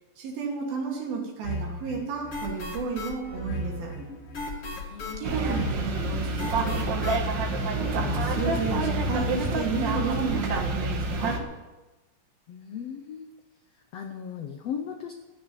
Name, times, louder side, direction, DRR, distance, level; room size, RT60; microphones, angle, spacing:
voice 1, 0.2-3.9 5.1-7.2 7.7-11.4, right 5 dB, 85° right, -1 dB, 4.5 m, -32 dB
sound 1, 1.4-9.7, left 1 dB, 45° left, 2.9 m, -35 dB
voice 2, 4.7-5.4 12.5-13.3 13.9-15.1, left 7 dB, 85° left, 6 dB, 1.4 m, -37 dB
sound 2, 5.2-11.4, right 2 dB, 65° right, 1.1 m, -28 dB
15.5 x 6.9 x 9.6 m, 1.1 s
omnidirectional pair, 4.1 m